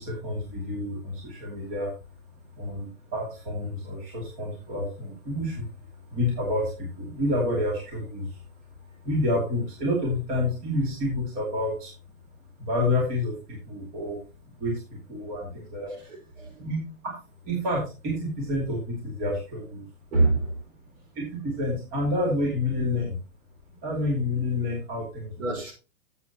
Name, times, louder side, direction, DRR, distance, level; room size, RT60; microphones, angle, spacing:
voice 1, 0.0-1.9 2.6-8.4 9.0-11.9 12.6-14.2 14.6-15.9 16.6-16.8 17.0-17.1 17.4-19.9 21.1-23.2 23.8-25.6, left 1 dB, 20° right, 2.5 m, -29 dB
voice 2, 15.9-16.7 20.1-20.6 25.4-25.7, right 2 dB, 60° right, 5.0 m, -26 dB
12.5 x 7.7 x 2.9 m
hypercardioid pair, 160°, 42 cm